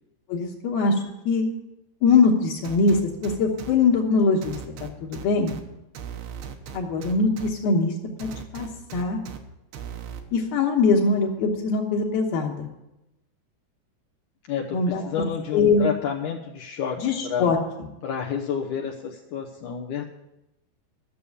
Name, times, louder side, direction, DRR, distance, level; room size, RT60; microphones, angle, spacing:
voice 1, 0.3-1.0 1.3-1.4 2.0-5.5 6.7-7.9 8.5-9.2 10.3-12.7 14.7-15.0 15.5-15.9 17.0-17.6, left 4 dB, 70° left, -5 dB, 3.0 m, -22 dB
sound 1, 2.6-3.7 4.4-5.6 6.0-7.5 8.2-9.4 9.7-10.2, right 8 dB, 70° right, 2.9 m, -37 dB
voice 2, 14.5-14.8 15.0-17.5 18.0-20.1, left 7 dB, 85° left, 0 dB, 1.7 m, -30 dB
13.0 x 7.0 x 8.6 m, 0.92 s
omnidirectional pair, 5.0 m